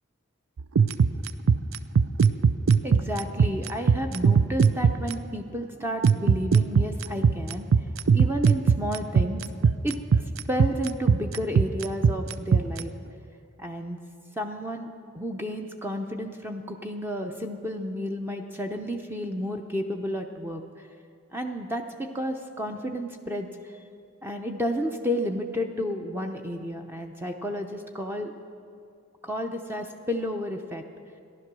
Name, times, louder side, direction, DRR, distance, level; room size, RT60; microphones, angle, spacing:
sound 1, 0.6-5.1 6.0-12.8, right 6 dB, 65° right, 0.4 m, -19 dB
voice 1, 2.8-7.7 8.1-9.4 9.8-10.0 10.5-12.9 13.6-14.0 14.4-20.9 21.3-23.8 24.2-28.3 29.2-30.8, equal, 10° right, 4 dB, 0.6 m, -31 dB
15.0 x 11.0 x 6.1 m, 2.4 s
head